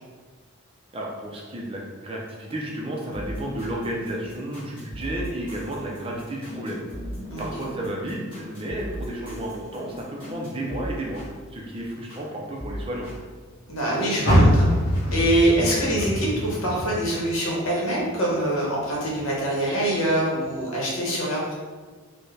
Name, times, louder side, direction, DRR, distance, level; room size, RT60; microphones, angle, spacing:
voice 1, 0.9-6.8 7.4-11.2 11.5-13.1, right 1 dB, 25° right, -2 dB, 0.4 m, -32 dB
sound 1, 3.1-12.3 12.6-14.1 14.9-15.0, right 1 dB, 25° left, 1.5 m, -39 dB
voice 2, 13.7-14.7 15.1-21.5, right 1 dB, 75° left, -4 dB, 1.1 m, -24 dB
Car, 14.2-17.5 17.9-19.3 19.7-19.8 20.4-20.5, equal, 50° left, 1.5 m, -23 dB
4.4 x 2.2 x 3.2 m, 1.4 s
head